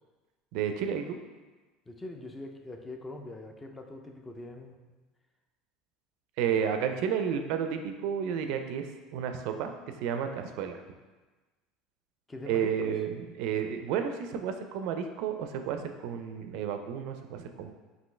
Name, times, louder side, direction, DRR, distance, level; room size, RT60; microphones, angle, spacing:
voice 1, 0.5-1.2 6.4-8.9 9.1-10.8 12.5-17.7, right 8 dB, 65° right, 7 dB, 0.4 m, -31 dB
voice 2, 1.9-4.8 12.3-12.9, left 2 dB, 10° left, 3 dB, 0.3 m, -43 dB
5.4 x 2.7 x 3.1 m, 1.2 s
cardioid pair, 155°, 0 cm